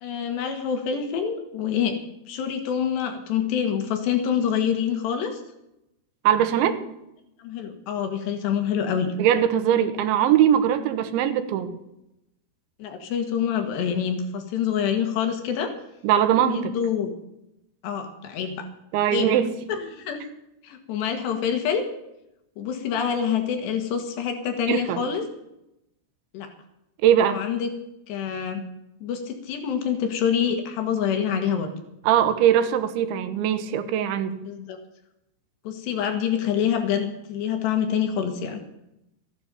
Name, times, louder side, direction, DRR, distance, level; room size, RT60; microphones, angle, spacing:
voice 1, 0.0-2.0 2.3-5.4 7.4-9.1 12.8-15.7 16.5-17.1 17.8-18.7 19.1-19.3 19.7-20.2 20.6-21.9 22.6-25.2 26.3-26.5 27.2-27.7 28.1-28.6 29.0-31.7 34.5-34.8 35.7-38.6, left 8 dB, 70° left, 6 dB, 3.8 m, -26 dB
voice 2, 6.3-6.8 9.2-11.8 16.0-16.8 18.9-19.5 24.7-25.0 27.0-27.4 32.1-34.5, right 10 dB, 85° right, 10 dB, 3.5 m, -21 dB
14.5 x 11.5 x 7.0 m, 0.85 s
omnidirectional pair, 5.2 m